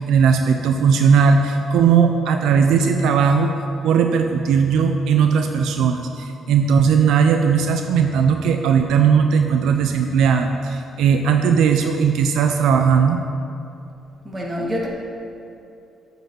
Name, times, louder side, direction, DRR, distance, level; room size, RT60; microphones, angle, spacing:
voice 1, 0.0-3.5 3.8-13.2, right 6 dB, 85° right, 5 dB, 0.5 m, -17 dB
voice 2, 14.2-14.9, equal, 25° right, -3 dB, 2.1 m, -26 dB
8.8 x 5.4 x 6.3 m, 2.6 s
cardioid pair, 90°, 0 cm